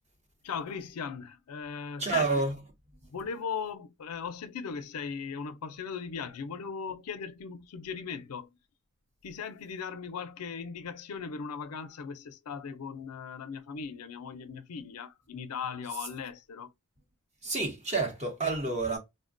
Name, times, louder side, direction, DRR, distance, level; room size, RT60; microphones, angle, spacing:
voice 1, 0.4-2.4 3.1-8.5 9.2-16.7, left 6 dB, 80° left, 0.4 m, -38 dB
voice 2, 2.0-2.5 17.4-19.0, right 3 dB, 30° right, 0.8 m, -29 dB
3.3 x 2.1 x 2.5 m
head